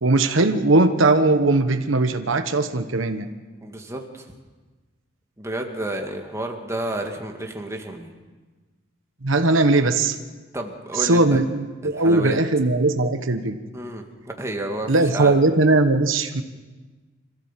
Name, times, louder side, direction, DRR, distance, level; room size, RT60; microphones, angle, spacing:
voice 1, 0.0-3.3 9.2-10.2 10.9-13.6 14.9-16.4, right 2 dB, 85° right, 8 dB, 1.2 m, -19 dB
voice 2, 3.6-4.3 5.4-8.1 10.5-11.4 11.8-12.4 13.7-15.4, right 1 dB, 15° right, 2 dB, 2.2 m, -31 dB
26.0 x 15.0 x 7.5 m, 1.3 s
head